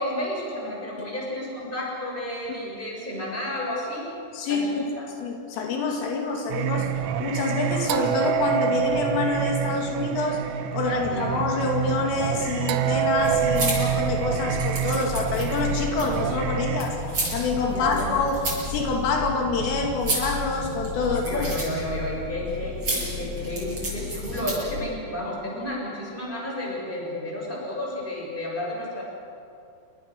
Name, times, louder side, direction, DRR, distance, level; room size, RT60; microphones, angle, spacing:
voice 1, 0.0-4.1 4.4-5.1 11.0-11.3 17.6-18.2 21.0-29.0, left 1 dB, 10° left, -3 dB, 7.0 m, -31 dB
voice 2, 4.3-4.9 5.2-6.9 7.2-10.4 10.7-21.6, left 3 dB, 80° left, 1 dB, 5.0 m, -26 dB
Singing, 6.5-16.8, right 8 dB, 85° right, 3.7 m, -27 dB
sound 1, 11.0-24.2, right 4 dB, 60° left, 9.4 m, -41 dB
sound 2, 13.1-24.8, left 1 dB, 25° right, 7.8 m, -32 dB
27.5 x 25.5 x 6.7 m, 2.6 s
omnidirectional pair, 5.8 m